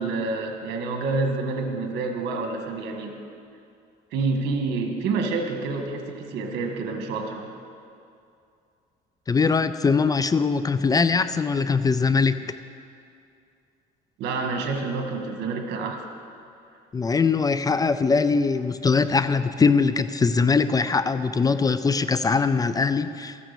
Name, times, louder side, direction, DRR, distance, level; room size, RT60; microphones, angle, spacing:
voice 1, 0.0-3.1 4.1-7.5 14.2-16.0, right 3 dB, 85° right, 4 dB, 1.7 m, -28 dB
voice 2, 9.3-12.6 16.9-23.4, left 4 dB, 20° left, 12 dB, 0.5 m, -22 dB
14.0 x 9.6 x 6.9 m, 2.5 s
cardioid pair, 110°, 17 cm